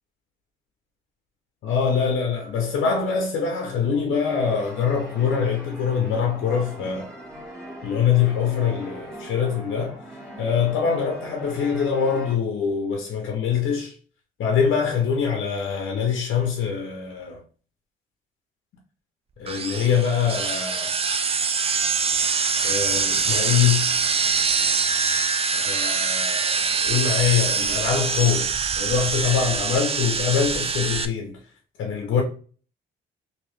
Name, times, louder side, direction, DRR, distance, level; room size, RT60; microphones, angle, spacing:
voice 1, 1.6-7.1 7.8-10.0 10.4-13.9 14.4-17.4 19.4-21.0 22.6-23.9 25.5-31.4 31.8-32.2, left 7 dB, 75° left, 0.7 m, -24 dB
sound 1, 4.3-12.4, equal, 15° right, 1.7 m, -40 dB
sound 2, 19.5-31.1, right 5 dB, 30° right, 0.4 m, -24 dB
3.0 x 2.8 x 3.1 m
cardioid pair, 90°, 20 cm